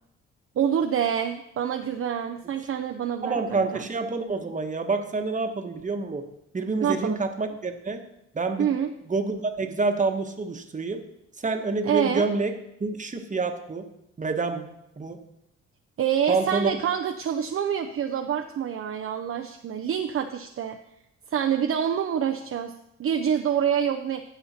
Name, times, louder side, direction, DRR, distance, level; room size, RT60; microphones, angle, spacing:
voice 1, 0.6-3.8 6.8-7.2 8.6-8.9 11.8-12.3 16.0-20.8 21.3-22.7 23.0-24.2, right 8 dB, 45° right, 4 dB, 0.6 m, -26 dB
voice 2, 3.2-6.2 6.5-8.0 8.3-8.7 9.1-11.0 11.4-12.5 12.8-13.9 14.2-14.7 15.0-15.2 16.3-16.8, right 3 dB, 25° right, 5 dB, 1.3 m, -27 dB
15.0 x 5.5 x 4.2 m, 0.82 s
cardioid pair, 90°, 30 cm